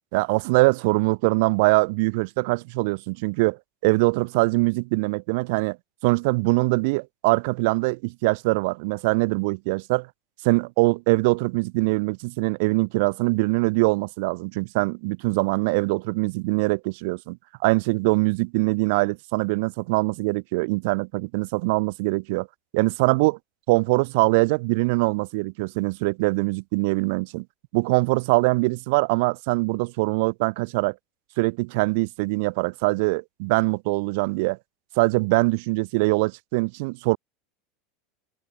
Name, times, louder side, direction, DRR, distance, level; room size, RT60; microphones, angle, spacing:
voice 1, 0.1-5.8 6.0-10.1 10.4-17.4 17.6-22.5 22.7-23.4 23.7-27.4 27.7-30.9 31.4-34.6 35.0-37.2, right 27 dB, 65° right, 0.3 m, -23 dB
hypercardioid pair, 105°, 0 cm